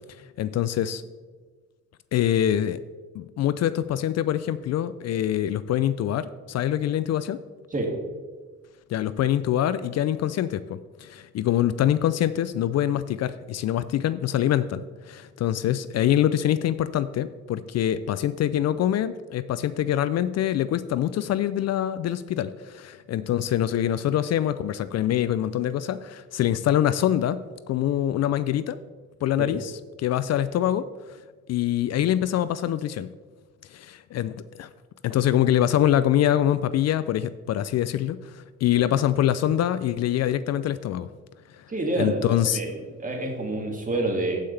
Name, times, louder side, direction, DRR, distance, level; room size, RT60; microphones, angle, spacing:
voice 1, 0.4-1.0 2.1-2.8 3.1-7.4 8.9-27.4 27.7-28.8 29.2-29.7 30.0-30.9 31.5-33.1 33.7-34.7 35.0-41.1 41.5-41.6 42.0-42.6, left 11 dB, 60° left, 14 dB, 0.4 m, -24 dB
voice 2, 41.7-42.7 43.0-44.4, right 2 dB, 25° right, 1 dB, 2.2 m, -27 dB
15.0 x 5.7 x 3.3 m, 1.4 s
cardioid pair, 90°, 30 cm